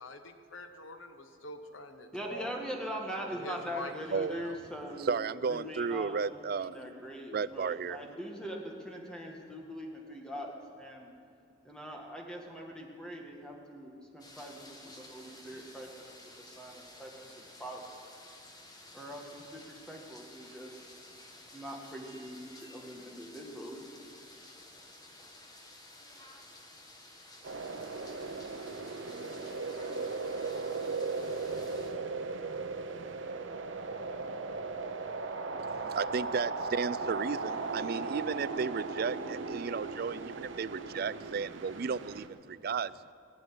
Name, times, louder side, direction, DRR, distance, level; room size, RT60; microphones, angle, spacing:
voice 1, 0.0-2.5 3.4-4.6, left 1 dB, 75° left, 6 dB, 1.2 m, -45 dB
voice 2, 2.1-5.2 5.5-6.2 6.5-11.1 11.6-17.9 18.9-21.1 21.5-23.9, equal, 5° left, 0 dB, 1.8 m, -42 dB
voice 3, 5.0-6.8 7.3-8.0 35.6-43.0, right 5 dB, 50° right, 16 dB, 0.3 m, -34 dB
sound 1, 14.2-32.0, left 1 dB, 20° left, 1.3 m, -53 dB
sound 2, 27.4-42.3, right 3 dB, 70° right, 0.9 m, -37 dB
20.0 x 7.2 x 9.8 m, 2.5 s
head